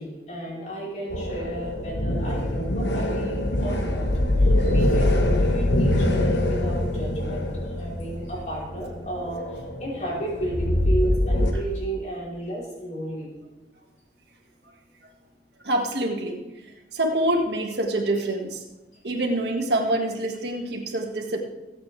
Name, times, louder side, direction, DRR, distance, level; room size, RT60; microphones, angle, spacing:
voice 1, 0.0-4.1 4.4-7.5 7.8-9.4 9.8-13.3, right 1 dB, 45° left, -5 dB, 4.7 m, -33 dB
sound 1, 1.1-11.5, left 1 dB, 85° left, 1.4 m, -24 dB
voice 2, 15.6-16.4 16.9-18.6 19.0-21.4, right 1 dB, 75° right, 1 dB, 2.0 m, -25 dB
20.5 x 8.4 x 3.5 m, 1.1 s
head